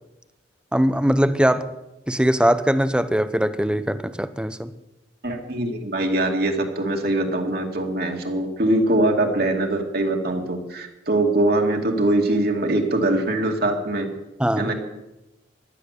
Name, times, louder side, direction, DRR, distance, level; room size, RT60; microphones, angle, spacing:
voice 1, 0.7-1.7 2.1-4.7 14.4-14.7, equal, 5° right, 12 dB, 0.7 m, -21 dB
voice 2, 5.2-14.1 14.6-14.7, right 1 dB, 55° right, 2 dB, 2.3 m, -22 dB
16.0 x 12.0 x 6.7 m, 0.95 s
head